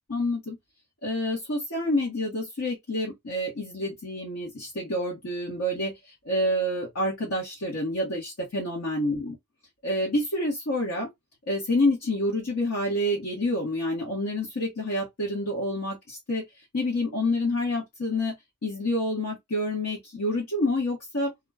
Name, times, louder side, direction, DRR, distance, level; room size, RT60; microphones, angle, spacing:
voice 1, 0.1-0.6 1.0-9.3 9.8-11.1 11.5-16.4 16.7-18.4 18.6-21.3, left 1 dB, 70° left, 1.0 m, -28 dB
2.4 x 2.2 x 3.3 m
head